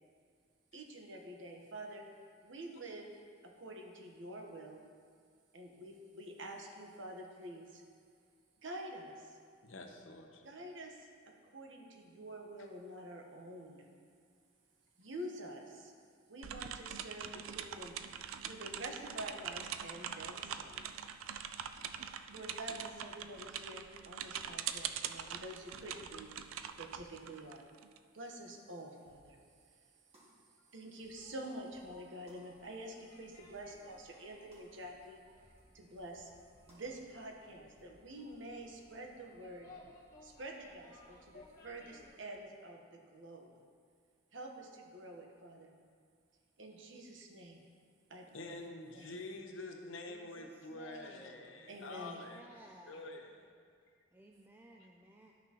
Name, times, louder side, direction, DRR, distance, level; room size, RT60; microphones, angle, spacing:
voice 1, 0.7-2.1 2.4-4.8 5.5-7.8 8.6-9.4 10.4-11.1 11.4-13.9 15.0-15.9 16.3-18.0 18.4-20.9 21.9-26.3 26.8-27.7 28.1-29.4 30.7-35.2 35.7-36.3 36.7-39.7 40.2-43.5 44.3-45.7 46.6-47.6 48.1-48.5 48.9-49.2 51.7-52.2, right 1 dB, 65° right, 1 dB, 1.0 m, -48 dB
voice 2, 9.6-10.5 48.3-52.5 52.9-53.5, left 2 dB, 75° left, 3 dB, 0.8 m, -47 dB
sound 1, 16.4-28.0, right 8 dB, 90° right, 0.4 m, -43 dB
sound 2, 29.1-29.3 29.6-29.7 30.1-30.3 30.7-30.8 31.0-31.3 31.7-31.9 32.3-32.4 32.8-32.9 33.4-33.6 34.0-34.1 34.5-34.7 35.0-35.1 35.4-35.6 36.1-36.3 36.7-36.8 37.2-37.3 37.8-38.0 38.3-38.4, right 1 dB, 30° right, 1.8 m, -67 dB
sound 3, 30.7-42.1, left 2 dB, 45° left, 1.4 m, -61 dB
voice 3, 50.1-51.7 52.0-53.2 54.1-55.3, right 1 dB, 10° right, 0 dB, 0.3 m, -58 dB
12.0 x 5.9 x 2.9 m, 2.1 s
head